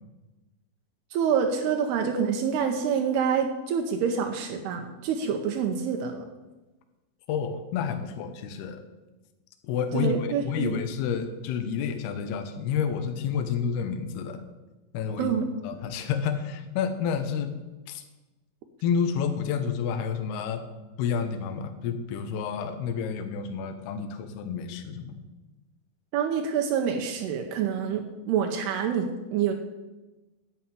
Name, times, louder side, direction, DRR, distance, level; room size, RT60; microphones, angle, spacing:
voice 1, 1.1-6.2 9.9-10.8 15.2-15.5 26.1-29.5, right 7 dB, 85° right, 3 dB, 2.9 m, -27 dB
voice 2, 7.3-8.8 9.6-10.1 10.5-14.4 14.9-15.3 15.6-17.5 17.9-18.0 18.8-20.6 21.0-25.2, left 7 dB, 80° left, 7 dB, 2.9 m, -29 dB
11.0 x 5.7 x 8.9 m, 1.1 s
omnidirectional pair, 4.6 m